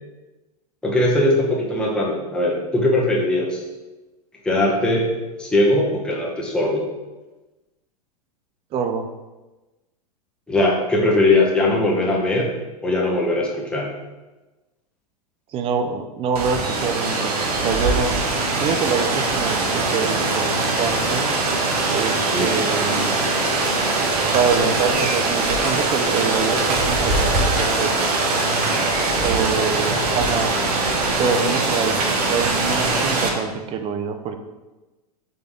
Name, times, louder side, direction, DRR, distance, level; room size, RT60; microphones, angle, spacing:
voice 1, 0.8-3.6 4.4-5.1 5.4-6.8 10.5-12.5 12.8-13.9 22.3-22.5, left 1 dB, 5° left, -4 dB, 0.8 m, -20 dB
voice 2, 8.7-9.1 15.5-18.1 18.6-20.5 20.8-21.3 21.9-23.2 24.3-27.9 29.2-30.5 31.2-34.4, right 6 dB, 30° right, 7 dB, 0.4 m, -25 dB
Rain, 16.4-33.3, right 3 dB, 70° right, 0.9 m, -21 dB
3.9 x 3.3 x 3.5 m, 1.1 s
hypercardioid pair, 110°, 20 cm